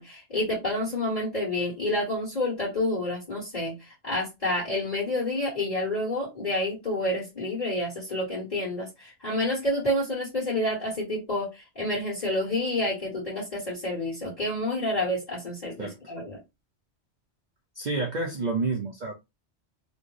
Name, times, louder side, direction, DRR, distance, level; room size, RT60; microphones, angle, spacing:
voice 1, 0.0-16.4, left 1 dB, 40° left, 1.7 m, -29 dB
voice 2, 15.8-16.1 17.7-19.1, right 3 dB, 50° right, 0.6 m, -29 dB
4.3 x 2.1 x 3.1 m
omnidirectional pair, 1.1 m